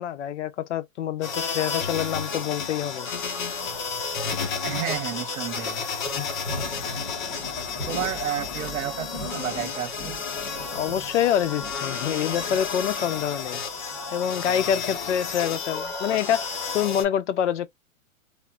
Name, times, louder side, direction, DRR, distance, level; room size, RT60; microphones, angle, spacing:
voice 1, 0.0-3.1 6.2-6.3 10.7-13.6 14.1-16.5 16.7-17.7, left 10 dB, 60° left, 0.5 m, -26 dB
sound 1, 1.2-17.0, left 5 dB, 35° left, 0.8 m, -31 dB
sound 2, 3.5-3.8 4.4-4.5 4.9-5.0 6.1-16.5, left 2 dB, 20° left, 1.2 m, -41 dB
voice 2, 4.6-5.8 7.9-10.2, right 10 dB, 80° right, 1.0 m, -31 dB
3.3 x 2.5 x 2.3 m
hypercardioid pair, 160°, 41 cm